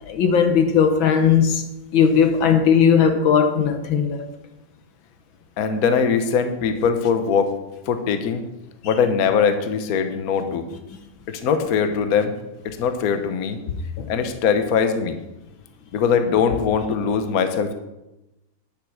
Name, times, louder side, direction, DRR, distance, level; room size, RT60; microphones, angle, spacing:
voice 1, 0.1-1.6 1.9-4.3 14.0-14.1, left 7 dB, 70° left, 1.7 m, -17 dB
voice 2, 5.6-7.5 7.9-8.4 8.8-10.6 11.4-12.3 12.6-13.6 14.1-15.2 15.9-17.7, left 6 dB, 55° left, 1.2 m, -21 dB
10.5 x 6.5 x 6.3 m
omnidirectional pair, 2.3 m